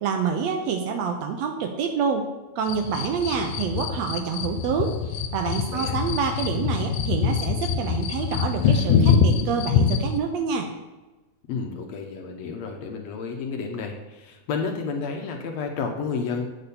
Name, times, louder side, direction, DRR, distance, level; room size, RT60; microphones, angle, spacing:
voice 1, 0.0-2.3 2.6-10.7, right 6 dB, 75° right, 4 dB, 1.7 m, -27 dB
sound 1, 2.7-10.2, left 6 dB, 90° left, 2.3 m, -24 dB
voice 2, 5.7-6.0 11.5-16.5, left 5 dB, 70° left, 3 dB, 1.9 m, -31 dB
8.3 x 4.1 x 6.8 m, 1.1 s
omnidirectional pair, 3.4 m